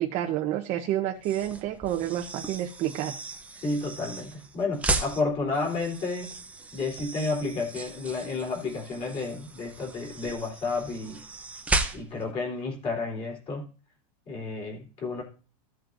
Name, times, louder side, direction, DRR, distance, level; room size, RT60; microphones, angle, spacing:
voice 1, 0.0-3.2, right 12 dB, 35° right, 3 dB, 0.9 m, -29 dB
sound 1, 1.2-12.3, right 2 dB, 5° right, 0.7 m, -35 dB
voice 2, 3.6-6.4 6.7-11.2 11.9-13.7 14.3-15.2, left 3 dB, 30° left, -1 dB, 3.6 m, -31 dB
15.5 x 7.9 x 2.6 m, 0.36 s
supercardioid pair, 155°, 20 cm